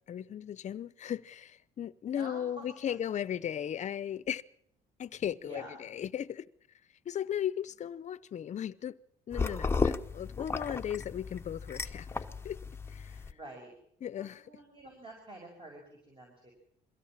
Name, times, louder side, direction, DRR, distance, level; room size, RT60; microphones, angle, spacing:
voice 1, 0.1-4.4 5.0-6.5 7.0-9.0 9.3-12.1 12.4-12.6 12.9-13.3 14.0-14.5, left 9 dB, 45° left, 0.8 m, -36 dB
voice 2, 2.1-2.9 5.3-5.8 13.0-13.7 14.1-16.5, right 1 dB, 30° right, 5.5 m, -49 dB
sound 1, 9.3-13.3, left 4 dB, 15° left, 0.9 m, -34 dB
23.0 x 16.5 x 7.4 m
cardioid pair, 110°, 17 cm